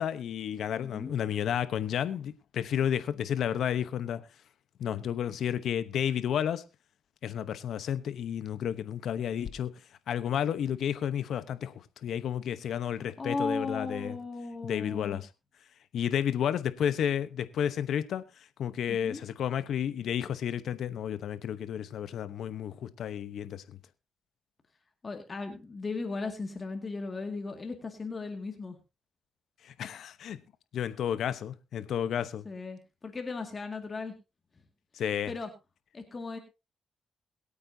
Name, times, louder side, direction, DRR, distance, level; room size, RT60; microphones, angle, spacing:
voice 1, 0.0-4.2 4.8-6.6 7.2-9.7 10.1-14.2 14.6-15.3 15.9-23.8 29.6-30.4 30.7-32.5 34.9-35.3, left 9 dB, 75° left, 0.9 m, -31 dB
voice 2, 0.8-1.2 13.2-15.2 18.9-19.2 25.0-28.8 32.4-34.1 35.3-35.5 35.9-36.4, left 3 dB, 40° left, 2.1 m, -36 dB
22.0 x 8.7 x 2.8 m
cardioid pair, 75°, 0 cm